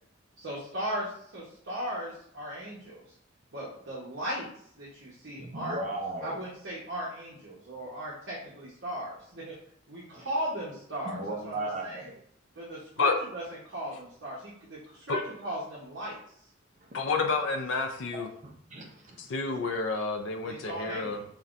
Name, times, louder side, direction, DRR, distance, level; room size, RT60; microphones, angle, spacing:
voice 1, 0.4-3.0 3.5-4.5 4.7-5.8 6.2-9.5 9.9-12.1 12.6-16.2 20.4-21.2, equal, 60° right, -7 dB, 0.9 m, -37 dB
voice 2, 5.4-6.4 10.1-10.3 11.0-12.2 18.1-18.2 18.7-19.3 19.6-19.7, right 2 dB, 35° right, 0 dB, 0.6 m, -36 dB
voice 3, 16.9-18.3 19.3-21.2, left 4 dB, 70° left, 3 dB, 0.4 m, -29 dB
5.5 x 2.2 x 2.5 m, 0.65 s
head